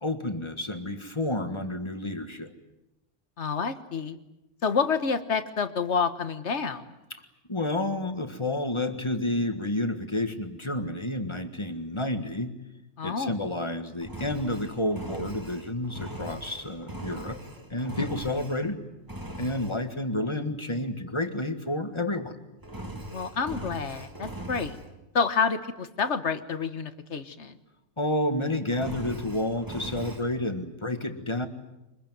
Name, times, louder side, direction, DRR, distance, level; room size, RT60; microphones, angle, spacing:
voice 1, 0.0-2.5 7.1-7.2 7.5-12.6 13.0-17.4 17.7-18.8 19.4-22.4 28.0-31.5, left 1 dB, 25° left, 8 dB, 1.7 m, -30 dB
voice 2, 3.4-4.2 4.6-6.8 13.0-13.3 23.1-24.8 25.1-27.6, left 5 dB, 65° left, 11 dB, 1.6 m, -28 dB
Engine, 14.0-18.7 19.1-19.8 22.6-24.9 28.7-30.3, right 1 dB, 15° right, 2.0 m, -40 dB
24.5 x 21.5 x 9.3 m, 0.95 s
omnidirectional pair, 1.3 m